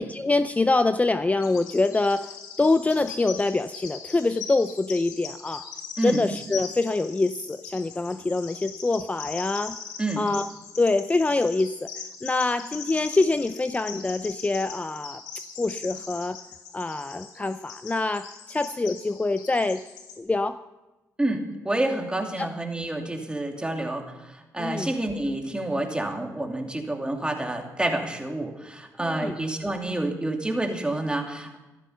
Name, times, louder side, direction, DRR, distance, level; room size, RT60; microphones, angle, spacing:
voice 1, 0.0-5.7 6.0-9.8 10.2-10.5 10.8-11.9 12.2-15.2 15.6-16.4 16.7-19.8 20.2-20.6 22.4-22.5 24.6-24.9 29.0-29.4, left 3 dB, 20° left, 12 dB, 0.5 m, -25 dB
Bird vocalization bird call bird song, 1.4-20.2, left 6 dB, 90° left, 1.8 m, -41 dB
voice 2, 21.2-31.6, right 1 dB, 15° right, 3 dB, 2.8 m, -28 dB
14.0 x 12.0 x 5.7 m, 1.1 s
supercardioid pair, 55°, 7 cm